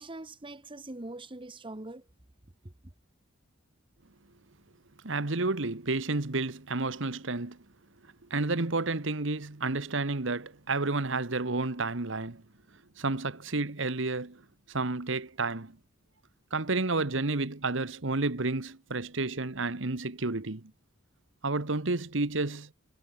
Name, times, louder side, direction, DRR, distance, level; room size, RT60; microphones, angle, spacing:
voice 1, 0.0-2.0, right 2 dB, 25° right, 1.4 m, -42 dB
voice 2, 5.0-7.6 8.3-12.4 13.0-14.4 14.7-15.8 16.5-20.7 21.4-22.7, right 3 dB, 70° right, 1.5 m, -31 dB
head